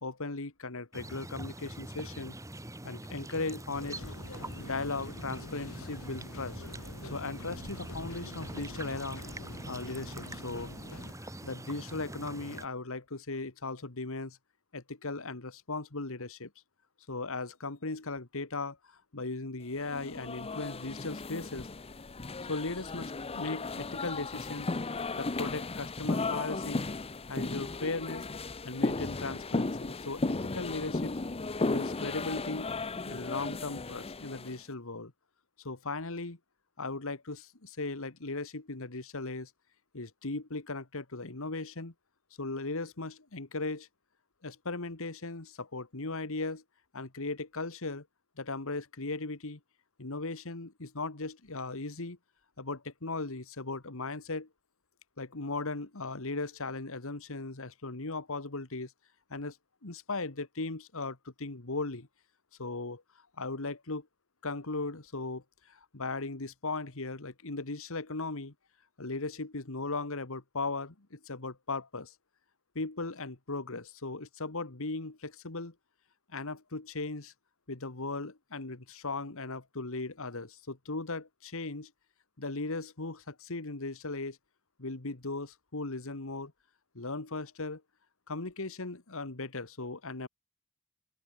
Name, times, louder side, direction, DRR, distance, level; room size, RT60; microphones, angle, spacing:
voice 1, 0.0-2.4 2.8-4.0 4.6-6.6 7.0-9.2 9.6-10.7 11.2-14.4 14.7-16.5 17.1-21.7 22.5-24.7 25.1-26.8 27.3-28.3 28.6-31.2 31.7-32.7 33.1-35.1 35.6-36.4 36.8-39.5 39.9-41.9 42.4-43.9 44.4-46.6 46.9-48.1 48.4-49.6 50.0-52.2 52.6-54.5 55.2-58.9 59.3-59.6 59.8-62.1 62.6-63.0 63.4-64.1 64.4-68.5 69.0-72.1 72.8-75.7 76.3-77.3 77.7-81.9 82.4-84.4 84.8-86.5 87.0-87.8 88.3-90.3, left 3 dB, 70° left, 1.9 m, -37 dB
sound 1, 0.9-12.7, right 1 dB, 15° right, 2.2 m, -44 dB
sound 2, 3.7-11.1, left 1 dB, 90° left, 3.5 m, -46 dB
sound 3, 19.9-34.6, left 3 dB, 30° left, 0.8 m, -35 dB
open air
head